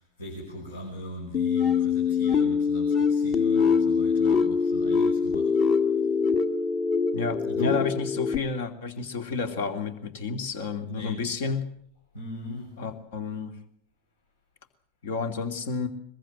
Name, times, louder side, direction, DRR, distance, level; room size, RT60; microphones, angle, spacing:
voice 1, 0.0-5.6 7.5-7.9 10.8-11.2 12.1-12.7, left 1 dB, 70° left, 1 dB, 5.8 m, -38 dB
sound 1, 1.3-8.4, left 5 dB, 30° left, 1.7 m, -24 dB
voice 2, 7.1-11.7 12.8-13.5 15.0-15.9, left 5 dB, 55° left, 8 dB, 2.8 m, -31 dB
22.5 x 22.0 x 7.7 m, 0.65 s
figure-of-eight pair, 90°, 0 cm